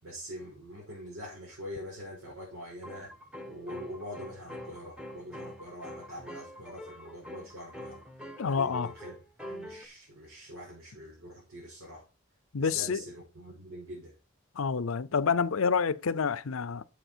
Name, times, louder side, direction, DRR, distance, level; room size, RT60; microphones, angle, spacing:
voice 1, 0.0-3.1 3.5-8.0 8.4-9.2 9.5-12.1 12.6-14.2, equal, 75° right, 5.6 m, -44 dB
sound 1, 1.8-1.9 2.8-9.9, equal, 5° right, 1.4 m, -45 dB
voice 2, 8.4-8.9 12.5-13.0 14.6-16.8, left 5 dB, 80° left, 0.6 m, -28 dB
9.1 x 7.5 x 4.4 m
head